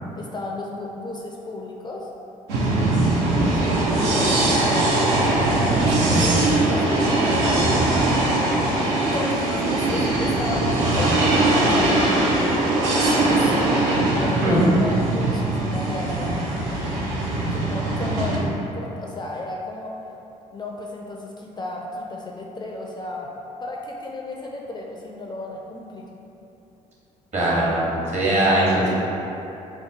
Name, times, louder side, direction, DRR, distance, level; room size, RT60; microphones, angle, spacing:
voice 1, 0.1-2.1 2.9-7.7 8.8-16.4 16.6-17.0 17.5-19.9 20.5-23.3 23.6-26.1, left 2 dB, 25° left, -1 dB, 0.4 m, -34 dB
sound 1, 2.5-18.4, right 2 dB, 75° right, 0.6 m, -21 dB
voice 2, 27.3-28.9, right 1 dB, 40° right, -6 dB, 1.2 m, -20 dB
4.3 x 2.2 x 2.6 m, 2.9 s
hypercardioid pair, 50°, 18 cm